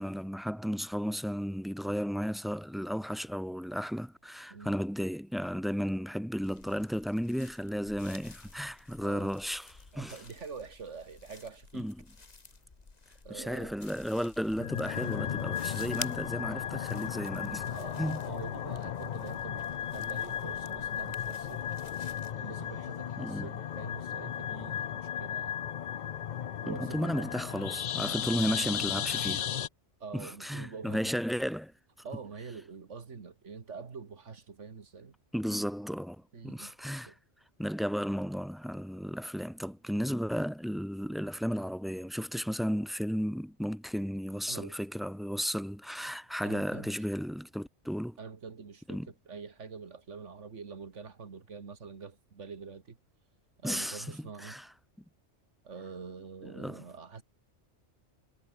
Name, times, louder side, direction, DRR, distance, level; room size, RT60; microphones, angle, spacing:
voice 1, 0.0-10.2 11.7-11.9 13.3-17.7 18.0-18.2 23.2-23.5 26.7-29.5 30.1-31.7 35.3-37.1 37.6-48.2 48.9-49.1 53.6-54.7 56.4-56.8, equal, ahead, 2.8 m, -34 dB
sound 1, 6.4-22.3, left 3 dB, 35° left, 1.7 m, -51 dB
voice 2, 9.0-9.3 9.9-11.9 13.2-13.8 17.7-21.7 22.4-25.6 26.6-27.3 30.0-31.2 32.0-35.2 36.3-36.7 37.1-37.2 44.5-44.8 46.4-46.9 48.2-53.0 53.6-54.6 55.6-57.2, right 5 dB, 85° right, 2.1 m, -45 dB
sound 2, 14.6-29.7, left 9 dB, 50° left, 0.6 m, -35 dB
omnidirectional pair, 1.2 m